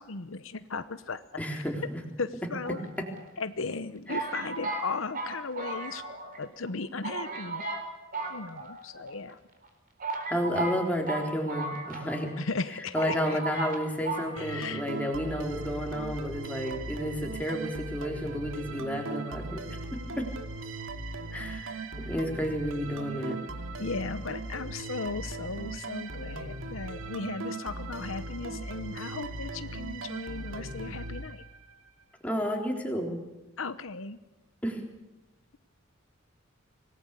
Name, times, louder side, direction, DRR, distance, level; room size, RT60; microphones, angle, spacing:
voice 1, 0.0-1.2 2.2-2.8 3.4-6.0 6.4-7.6 8.3-9.4 12.4-13.4 14.4-14.8 22.0-22.1 23.8-31.4 33.6-34.2, left 4 dB, 75° left, 12 dB, 0.9 m, -36 dB
voice 2, 1.4-2.0 3.0-3.1 4.1-4.3 10.3-12.3 12.9-20.3 21.3-23.4 32.2-33.2 34.6-34.8, equal, 5° left, 1 dB, 3.7 m, -31 dB
sound 1, 2.6-3.4 4.1-6.4 6.7-6.8 7.0-7.8 8.1-9.1 9.6-9.7 10.0-12.3 12.6-12.7 12.9-13.8 14.0-14.3, right 3 dB, 45° right, 4.3 m, -35 dB
sound 2, 14.4-31.9, right 2 dB, 80° right, 2.2 m, -38 dB
25.5 x 19.0 x 8.2 m, 1.0 s
head